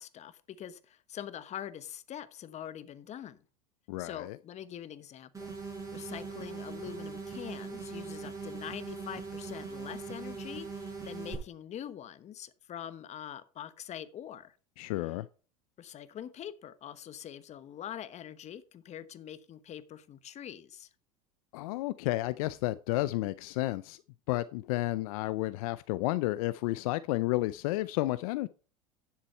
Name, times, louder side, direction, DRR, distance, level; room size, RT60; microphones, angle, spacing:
voice 1, 0.0-3.4 4.0-5.5 5.9-14.6 15.8-20.9, left 10 dB, 35° left, 1.1 m, -44 dB
voice 2, 3.9-4.4 14.8-15.3 21.5-24.0 24.3-28.5, left 18 dB, 75° left, 0.5 m, -31 dB
sound 1, 5.3-11.3, right 4 dB, 15° right, 5.3 m, -41 dB
10.5 x 7.4 x 4.4 m
supercardioid pair, 100°, 19 cm